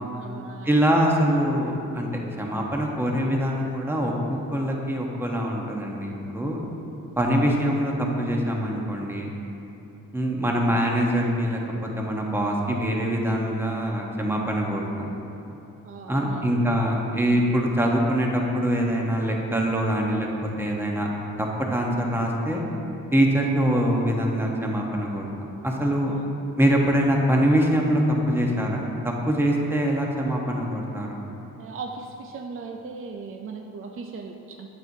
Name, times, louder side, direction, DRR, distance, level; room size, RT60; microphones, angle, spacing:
voice 1, 0.1-1.0 15.8-16.6 31.6-34.7, right 4 dB, 40° right, 2 dB, 0.5 m, -38 dB
voice 2, 0.6-2.1 2.4-6.6 7.2-9.3 10.1-15.1 16.1-20.3 20.6-21.1 21.4-22.6 23.1-26.1 26.6-31.2, equal, 5° right, -1 dB, 1.1 m, -24 dB
8.9 x 7.6 x 2.7 m, 2.9 s
cardioid pair, 85°, 33 cm